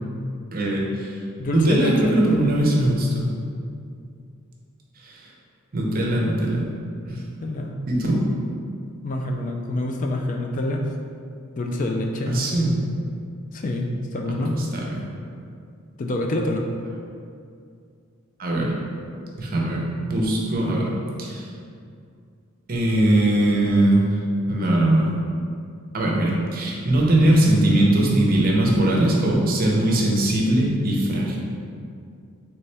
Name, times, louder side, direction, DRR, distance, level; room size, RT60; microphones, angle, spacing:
voice 1, 0.5-1.2 1.5-3.3 5.0-5.3 5.7-6.7 7.0-7.2 7.9-8.2 12.2-12.8 14.5-15.1 18.4-18.8 19.4-20.9 21.2-21.5 22.7-24.2 24.5-25.1 25.9-31.4, right 1 dB, 45° right, -2 dB, 0.7 m, -20 dB
voice 2, 1.4-2.2 7.1-7.8 9.0-10.9 11.6-12.4 13.5-14.6 16.0-16.7, left 1 dB, 35° left, 2 dB, 0.3 m, -26 dB
4.1 x 3.2 x 3.3 m, 2.4 s
head